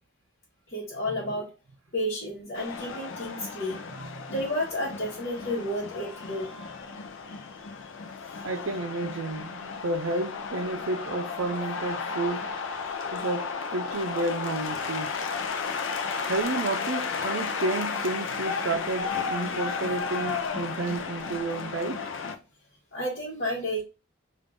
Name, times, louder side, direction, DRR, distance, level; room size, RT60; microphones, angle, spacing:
voice 1, 0.7-1.5 1.9-3.8 4.3-6.5 22.9-23.8, left 1 dB, 55° left, 1.2 m, -31 dB
sound 1, 2.5-22.4, left 5 dB, 70° left, 0.5 m, -33 dB
voice 2, 8.4-12.5 13.1-15.1 16.3-22.0, right 2 dB, 70° right, 0.5 m, -31 dB
3.6 x 2.5 x 3.6 m
head